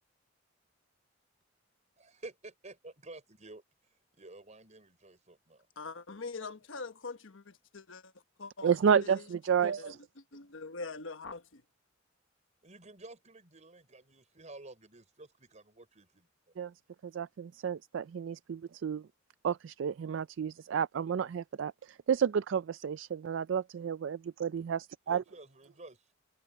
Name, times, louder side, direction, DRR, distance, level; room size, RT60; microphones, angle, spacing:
voice 1, 2.0-5.7 12.6-16.7 25.1-26.1, right 2 dB, 35° right, 5.4 m, -52 dB
voice 2, 5.8-8.1 8.4-8.7 9.0-9.2 9.6-9.9 10.3-11.6, left 4 dB, 75° left, 1.2 m, -43 dB
voice 3, 8.6-10.0 16.6-16.7 17.0-19.1 19.4-25.2, right 7 dB, 65° right, 0.4 m, -31 dB
head